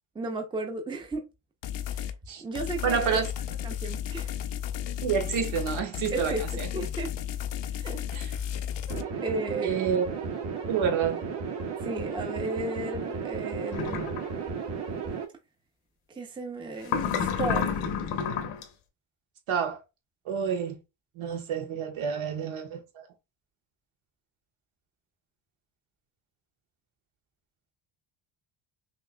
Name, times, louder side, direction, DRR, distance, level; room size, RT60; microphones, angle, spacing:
voice 1, 0.1-1.3 1.9-2.1 2.4-3.2 3.6-4.3 6.1-6.4 6.7-7.1 7.7-8.0 8.3-8.5 9.2-9.9 11.8-14.0 16.2-17.8, right 2 dB, 10° right, 0.6 m, -34 dB
sound 1, 1.6-2.2 2.5-9.0, left 10 dB, 65° left, 0.6 m, -33 dB
voice 2, 2.8-3.3 5.0-6.7 8.1-8.3 9.6-10.1 10.7-11.2 19.5-19.8 20.2-20.8 21.2-23.0, right 7 dB, 80° right, 1.5 m, -28 dB
sound 2, 8.9-15.2, right 5 dB, 60° right, 1.9 m, -34 dB
sound 3, 13.7-14.2 16.8-18.6, left 7 dB, 90° left, 1.1 m, -29 dB
5.8 x 2.8 x 2.2 m
cardioid pair, 160°, 48 cm